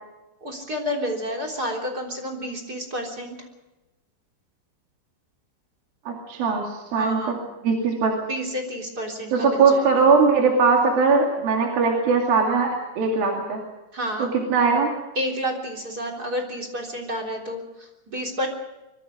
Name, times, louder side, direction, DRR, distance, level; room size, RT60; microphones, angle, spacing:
voice 1, 0.4-3.4 7.0-7.4 8.3-10.1 13.9-14.3 15.1-18.5, equal, 25° right, 3 dB, 3.3 m, -30 dB
voice 2, 6.1-7.4 7.6-8.1 9.3-13.6 14.2-14.9, right 4 dB, 55° right, 0 dB, 4.0 m, -20 dB
25.0 x 23.5 x 5.1 m, 1.0 s
omnidirectional pair, 5.4 m